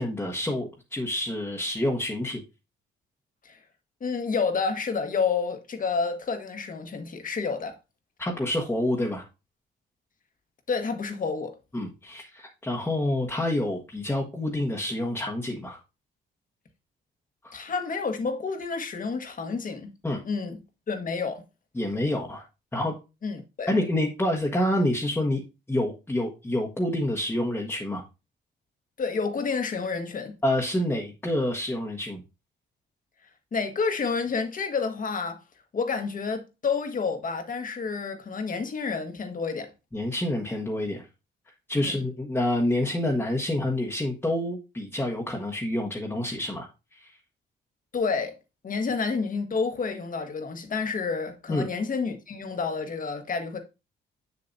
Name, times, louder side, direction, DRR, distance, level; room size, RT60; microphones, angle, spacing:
voice 1, 0.0-2.4 8.2-9.2 11.7-15.8 17.4-17.5 20.0-20.2 21.7-22.4 22.7-22.9 23.7-25.4 25.7-28.0 30.4-32.2 39.9-41.1 41.7-47.1 51.5-51.7, left 1 dB, 10° left, 1.3 m, -28 dB
voice 2, 4.0-7.8 10.7-11.6 17.5-19.9 20.2-20.6 20.9-21.4 23.2-23.8 29.0-30.3 33.5-35.4 35.7-39.7 41.8-42.0 47.9-48.3 48.6-53.6, left 5 dB, 45° left, 1.4 m, -29 dB
7.1 x 6.6 x 2.7 m
cardioid pair, 90°, 20 cm